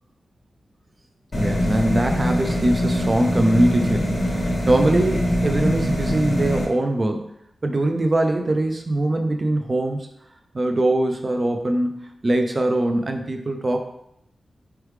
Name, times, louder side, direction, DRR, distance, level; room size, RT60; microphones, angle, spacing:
sound 1, 1.3-6.6, equal, 30° left, 0.8 m, -23 dB
voice 1, 1.3-7.3 7.6-10.1 10.5-13.8, right 1 dB, 30° right, 5 dB, 0.4 m, -22 dB
4.5 x 3.3 x 3.2 m, 0.76 s
wide cardioid pair, 170°, 0 cm